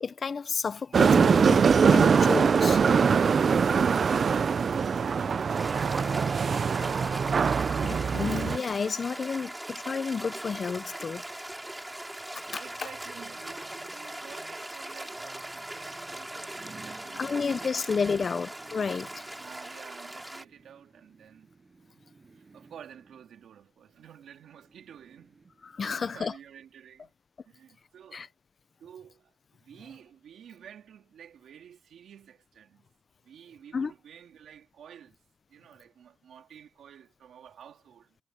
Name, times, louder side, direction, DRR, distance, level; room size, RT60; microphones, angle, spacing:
voice 1, 0.0-2.8 7.9-11.2 12.5-12.6 17.2-19.1 25.7-26.3 28.1-28.3 33.7-33.9, left 5 dB, 55° left, 0.6 m, -31 dB
sound 1, 0.9-8.6, right 6 dB, 60° right, 0.6 m, -22 dB
voice 2, 2.9-8.2 9.1-9.5 12.5-18.3 19.4-21.5 22.4-27.1 27.4-28.3 28.8-29.3 29.6-32.9 33.2-35.2 35.5-38.2, right 9 dB, 90° right, 3.1 m, -50 dB
sound 2, 5.5-20.4, right 1 dB, 10° right, 4.5 m, -40 dB
sound 3, 12.1-26.0 26.5-26.6, right 4 dB, 45° right, 8.0 m, -57 dB
cardioid pair, 75°, 0 cm